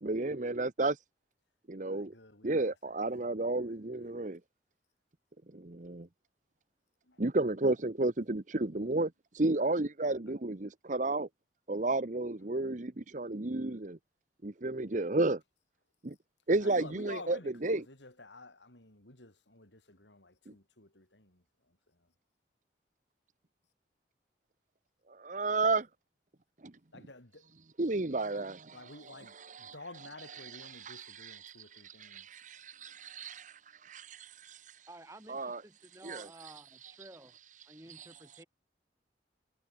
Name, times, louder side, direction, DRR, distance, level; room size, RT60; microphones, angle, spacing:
voice 1, 0.0-1.0 1.7-2.1 2.4-4.4 5.5-6.1 7.2-11.3 11.7-14.0 14.4-15.4 16.0-16.1 16.5-17.8 20.5-20.6 25.1-25.9 26.6-26.7 27.8-34.9 35.3-35.6 36.0-36.5 36.8-37.1 37.9-38.1, right 2 dB, 45° right, 1.0 m, -33 dB
voice 2, 1.8-4.4 7.0-7.2 16.6-21.8 26.9-27.5 28.7-32.3, left 2 dB, 90° left, 6.0 m, -52 dB
voice 3, 34.9-37.3 37.6-38.5, right 1 dB, 15° right, 4.7 m, -53 dB
head